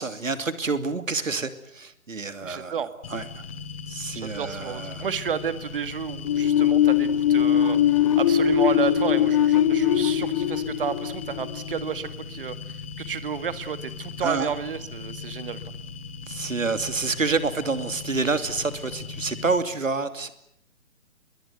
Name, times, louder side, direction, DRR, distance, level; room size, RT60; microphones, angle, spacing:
voice 1, 0.0-2.8 3.1-3.2 3.9-5.1 14.2-14.5 16.3-20.3, right 4 dB, 65° right, 11 dB, 2.9 m, -28 dB
voice 2, 2.4-2.9 4.1-7.8 8.2-15.6, right 7 dB, 40° right, 13 dB, 2.0 m, -31 dB
sound 1, 3.0-19.6, left 4 dB, 45° left, 2.3 m, -38 dB
sound 2, 6.2-11.9, left 10 dB, 25° left, 1.1 m, -21 dB
27.0 x 21.5 x 8.1 m, 0.75 s
figure-of-eight pair, 135°, 41 cm